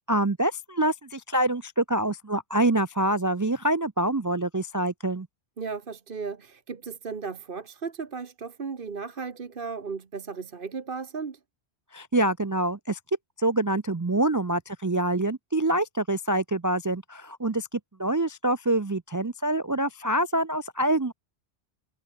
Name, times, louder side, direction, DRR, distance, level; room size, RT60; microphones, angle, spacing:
voice 1, 0.1-5.3 11.9-13.0 13.4-21.1, right 1 dB, 25° right, 0.4 m, -26 dB
voice 2, 5.6-11.4, right 5 dB, 55° right, 1.4 m, -35 dB
omnidirectional pair, 1.1 m